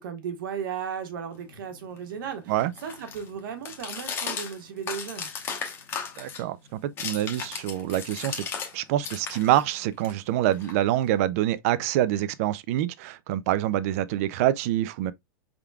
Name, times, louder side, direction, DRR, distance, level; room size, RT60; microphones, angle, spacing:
voice 1, 0.0-2.5 2.8-5.3, right 7 dB, 65° right, 1.2 m, -35 dB
sound 1, 1.4-8.7 9.0-11.2, left 6 dB, 20° left, 0.8 m, -37 dB
voice 2, 6.2-8.4 8.7-15.1, right 13 dB, 40° right, 0.4 m, -26 dB
4.7 x 3.6 x 2.2 m
supercardioid pair, 160°, 12 cm